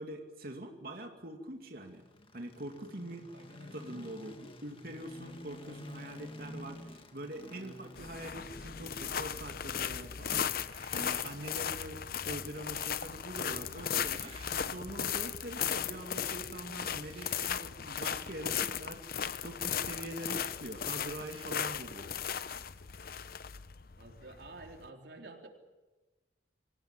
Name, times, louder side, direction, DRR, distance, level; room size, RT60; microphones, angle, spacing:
voice 1, 0.0-2.0 2.3-3.3 3.7-14.3 14.7-22.4, right 1 dB, 55° right, 3 dB, 2.5 m, -44 dB
sound 1, 1.8-15.9, left 1 dB, 30° left, 1.8 m, -52 dB
voice 2, 3.3-3.8 24.0-25.5, right 2 dB, 75° right, 2 dB, 4.0 m, -51 dB
sound 2, 8.0-24.9, left 8 dB, 55° left, 0.7 m, -36 dB
sound 3, 10.3-11.4 13.7-14.6 16.9-17.5 19.9-20.0 20.3-20.5 21.1-21.5, right 6 dB, 35° right, 3.5 m, -57 dB
26.5 x 16.5 x 9.1 m, 1.2 s
head